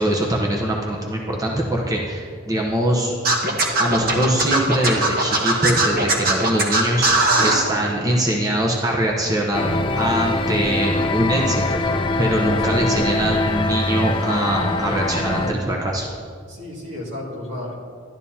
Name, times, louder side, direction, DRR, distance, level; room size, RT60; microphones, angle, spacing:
voice 1, 0.0-3.1 3.8-9.7 9.9-16.1, right 1 dB, 15° right, -2 dB, 0.9 m, -22 dB
Scratching (performance technique), 3.2-7.6, right 2 dB, 45° right, 1.3 m, -19 dB
sound 1, 9.5-15.5, left 2 dB, 25° left, 0.4 m, -23 dB
voice 2, 12.5-13.1 16.5-17.8, left 1 dB, 75° right, -3 dB, 2.3 m, -33 dB
12.0 x 10.5 x 2.8 m, 2.1 s
head